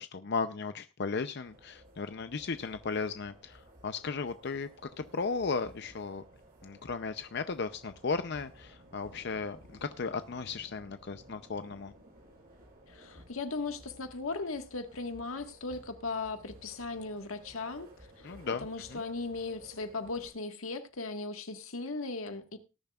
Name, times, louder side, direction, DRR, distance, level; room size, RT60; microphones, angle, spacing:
voice 1, 0.0-4.7 5.0-6.2 6.6-11.9 18.2-19.0, left 4 dB, 55° left, 0.6 m, -35 dB
sound 1, 1.4-20.3, right 1 dB, 45° right, 6.0 m, -56 dB
voice 2, 12.9-18.3 18.6-22.6, left 3 dB, 90° left, 1.6 m, -38 dB
18.5 x 10.5 x 2.4 m
head